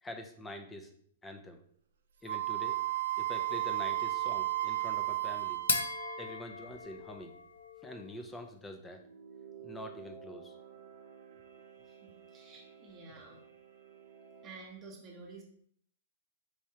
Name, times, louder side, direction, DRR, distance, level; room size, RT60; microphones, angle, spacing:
voice 1, 0.0-1.0 1.2-1.6 2.2-2.9 3.2-5.6 6.2-7.4 7.8-9.1 9.6-10.5, left 1 dB, 10° left, 5 dB, 0.5 m, -45 dB
Wind instrument woodwind instrument, 2.3-6.4, right 16 dB, 80° right, 0.4 m, -34 dB
sound 1, 3.5-8.3, left 5 dB, 85° left, 0.6 m, -39 dB
sound 2, 8.9-14.6, right 7 dB, 55° right, 0.9 m, -53 dB
voice 2, 11.9-13.4 14.4-15.4, right 3 dB, 25° right, -1 dB, 1.0 m, -51 dB
4.6 x 3.1 x 2.8 m, 0.63 s
hypercardioid pair, 150°, 0 cm